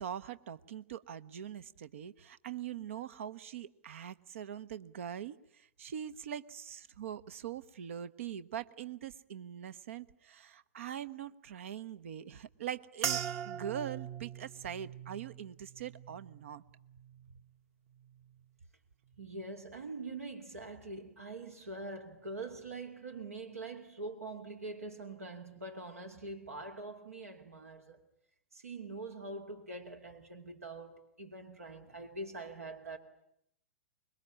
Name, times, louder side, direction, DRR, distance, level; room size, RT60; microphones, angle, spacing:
voice 1, 0.0-16.6, right 9 dB, 65° right, 1.0 m, -42 dB
sound 1, 13.0-17.6 17.9-18.5 19.1-19.4, right 9 dB, 35° right, 1.2 m, -41 dB
voice 2, 19.2-28.0 28.5-33.0, right 2 dB, 85° right, 2.7 m, -44 dB
25.5 x 22.0 x 9.9 m
figure-of-eight pair, 105°, 8 cm